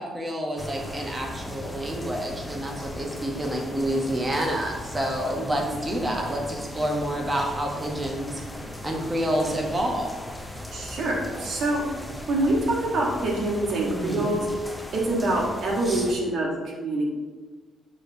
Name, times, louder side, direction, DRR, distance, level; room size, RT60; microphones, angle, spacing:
voice 1, 0.0-8.4 8.8-10.1 13.9-14.3 15.9-16.0, right 1 dB, 20° right, 0 dB, 0.9 m, -28 dB
sound 1, 0.6-16.1, left 1 dB, 10° left, 0.6 m, -38 dB
voice 2, 5.4-5.9 10.7-11.8 12.3-14.5 14.9-17.1, right 1 dB, 65° right, -2 dB, 1.1 m, -26 dB
6.3 x 3.1 x 2.7 m, 1.3 s
cardioid pair, 90°, 0 cm